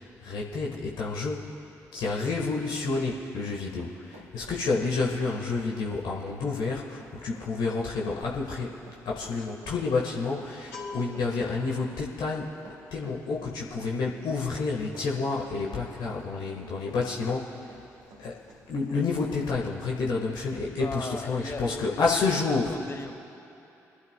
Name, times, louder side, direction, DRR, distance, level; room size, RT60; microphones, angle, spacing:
voice 1, 0.0-1.5 1.9-8.8 9.0-12.6 12.9-17.8 18.2-18.4 18.7-22.8, left 4 dB, 65° left, -2 dB, 1.6 m, -29 dB
Run, 3.1-19.5 19.9-20.0 20.5-20.7, right 2 dB, 85° right, 2.2 m, -52 dB
sound 1, 8.8-17.3 17.6-17.8 18.1-18.9 19.2-19.5, left 3 dB, 90° left, 3.0 m, -48 dB
voice 2, 20.8-22.2 22.5-23.1, left 3 dB, 30° left, 6 dB, 1.5 m, -38 dB
26.5 x 12.0 x 2.3 m, 3.0 s
hypercardioid pair, 40°, 8 cm